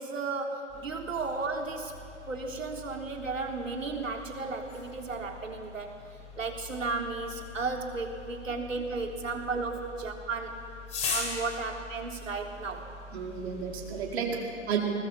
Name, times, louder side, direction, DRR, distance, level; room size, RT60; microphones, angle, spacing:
voice 1, 0.0-1.9 2.3-5.9 6.4-10.7 11.1-12.9, right 4 dB, 80° right, 2 dB, 3.6 m, -34 dB
sound 1, 0.7-14.2, left 4 dB, 20° left, 4.1 m, -42 dB
voice 2, 13.1-14.8, right 6 dB, 55° right, -1 dB, 4.5 m, -32 dB
21.0 x 19.5 x 7.4 m, 2.5 s
hypercardioid pair, 130°, 38 cm